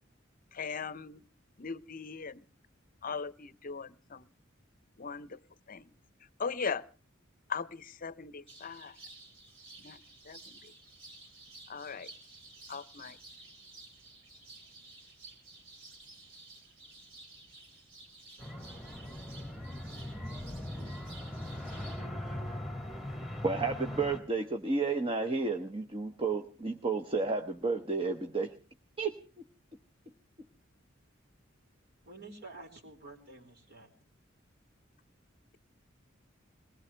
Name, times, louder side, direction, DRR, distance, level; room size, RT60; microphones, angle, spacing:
voice 1, 0.5-1.2 1.6-2.4 3.0-4.3 5.0-5.4 5.7-5.9 6.4-6.8 7.5-9.0 9.8-10.7 11.7-12.1 12.7-13.2, left 5 dB, 45° left, 18 dB, 0.7 m, -39 dB
sound 1, 8.5-22.0, right 2 dB, 70° right, 6.1 m, -53 dB
sound 2, 18.4-24.2, left 1 dB, ahead, 2.1 m, -40 dB
voice 2, 23.4-28.5 29.0-29.1, right 4 dB, 25° right, 6 dB, 1.0 m, -31 dB
voice 3, 32.0-33.9, right 2 dB, 55° right, 3 dB, 4.3 m, -49 dB
21.5 x 19.5 x 3.3 m, 0.37 s
head